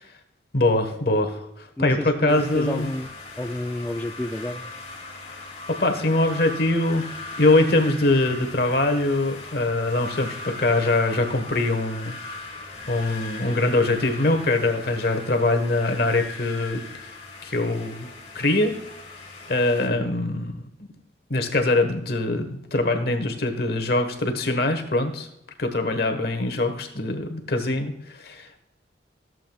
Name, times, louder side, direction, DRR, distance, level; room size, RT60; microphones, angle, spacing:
voice 1, 0.5-2.9 5.8-7.0 7.4-12.2 12.9-16.8 17.4-18.1 18.3-18.7 19.5-20.6 21.3-25.3 25.6-28.6, left 2 dB, 55° left, 5 dB, 1.3 m, -23 dB
voice 2, 1.8-4.7 20.0-20.1, left 1 dB, 10° left, 4 dB, 0.3 m, -31 dB
sound 1, 2.3-19.9, left 3 dB, 35° left, 1.7 m, -39 dB
15.0 x 7.6 x 2.3 m, 0.82 s
head